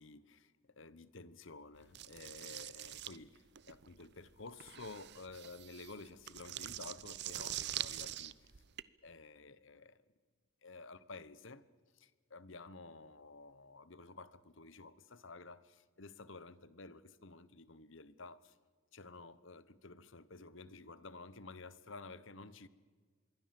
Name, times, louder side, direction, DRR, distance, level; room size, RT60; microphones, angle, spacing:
voice 1, 0.0-8.5 9.0-10.0 10.6-11.7 11.9-18.6 18.9-22.7, left 3 dB, 60° left, 1.1 m, -52 dB
sound 1, 1.9-8.8, right 12 dB, 55° right, 0.7 m, -44 dB
26.5 x 22.5 x 7.8 m
head